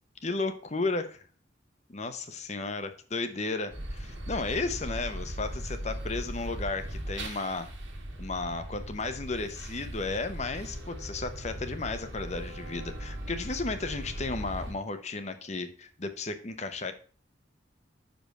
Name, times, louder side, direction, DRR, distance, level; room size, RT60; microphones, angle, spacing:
voice 1, 0.2-1.2 1.9-7.7 8.2-16.9, left 3 dB, 35° left, 9 dB, 0.8 m, -34 dB
sound 1, 3.7-14.7, right 1 dB, 70° right, 1.6 m, -39 dB
6.2 x 5.2 x 6.3 m, 0.42 s
head